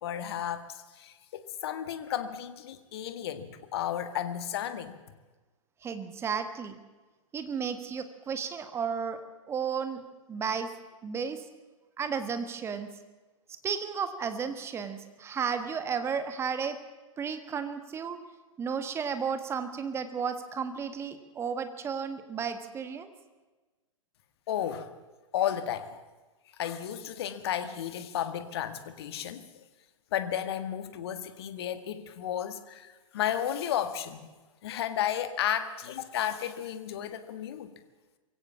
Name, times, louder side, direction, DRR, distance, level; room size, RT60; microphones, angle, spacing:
voice 1, 0.0-5.0 24.5-24.9 25.3-26.0 26.6-29.6 30.1-34.3 34.6-37.7, left 10 dB, 50° left, 10 dB, 1.8 m, -33 dB
voice 2, 5.8-6.7 7.3-10.0 10.3-10.7 11.0-11.4 12.0-12.9 13.6-16.8 17.2-18.2 18.6-23.1, right 6 dB, 15° right, 9 dB, 1.5 m, -33 dB
23.0 x 16.5 x 7.3 m, 1.2 s
figure-of-eight pair, 110°, 17 cm